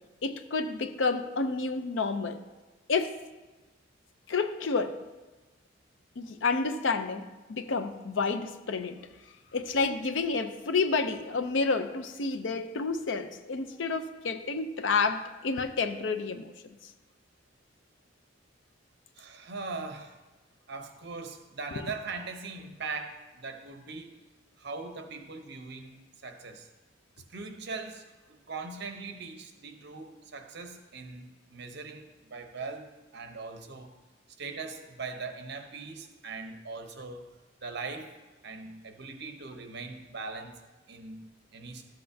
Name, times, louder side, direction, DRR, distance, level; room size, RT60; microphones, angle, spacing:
voice 1, 0.2-2.4 2.9-3.2 4.3-5.0 6.2-9.0 9.5-16.9 21.8-21.9, left 4 dB, 70° left, 10 dB, 0.6 m, -30 dB
voice 2, 19.2-20.2 20.7-24.1 24.6-26.7 27.3-28.0 28.5-33.9 34.4-37.3 37.6-38.1 38.4-40.6 40.9-41.9, right 4 dB, 60° right, 6 dB, 0.8 m, -40 dB
13.0 x 7.8 x 2.7 m, 1.2 s
head